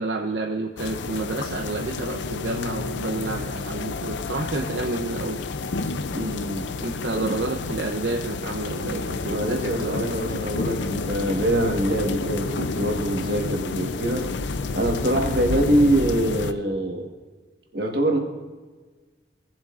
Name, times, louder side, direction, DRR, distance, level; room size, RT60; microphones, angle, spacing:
voice 1, 0.0-5.4 6.8-10.2, right 2 dB, 75° right, 1 dB, 0.7 m, -29 dB
sound 1, 0.8-16.5, left 4 dB, 80° left, 0.5 m, -30 dB
voice 2, 6.1-6.7 7.1-7.3 9.3-14.3 14.7-17.1 17.7-18.2, right 1 dB, 60° right, 2 dB, 1.5 m, -24 dB
18.0 x 7.5 x 2.5 m, 1.4 s
head